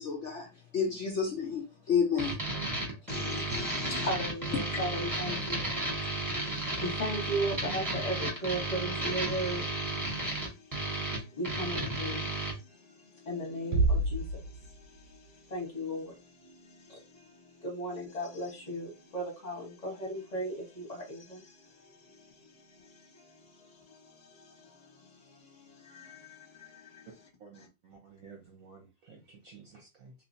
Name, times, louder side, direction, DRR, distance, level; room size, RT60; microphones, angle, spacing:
voice 1, 0.0-2.4, left 6 dB, 80° left, 0.6 m, -30 dB
sound 1, 2.2-12.5, right 2 dB, 15° right, 0.9 m, -33 dB
voice 2, 3.1-27.1, equal, 25° left, 1.1 m, -38 dB
Bass drum, 13.7-15.2, right 2 dB, 80° right, 1.2 m, -28 dB
voice 3, 27.4-30.1, right 5 dB, 60° right, 1.0 m, -53 dB
3.3 x 3.0 x 2.7 m
omnidirectional pair, 2.1 m